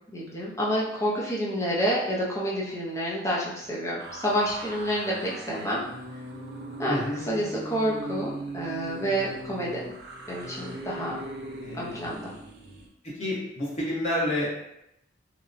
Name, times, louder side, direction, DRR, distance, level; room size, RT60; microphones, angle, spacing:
voice 1, 0.1-5.8 6.8-9.9 10.3-11.1 11.7-12.3, equal, 15° left, -6 dB, 0.6 m, -29 dB
sound 1, 4.0-12.9, right 2 dB, 55° right, 0.4 m, -39 dB
voice 2, 6.9-7.2 11.6-11.9 13.2-14.6, left 1 dB, 35° left, -8 dB, 0.9 m, -29 dB
2.8 x 2.1 x 2.5 m, 0.81 s
head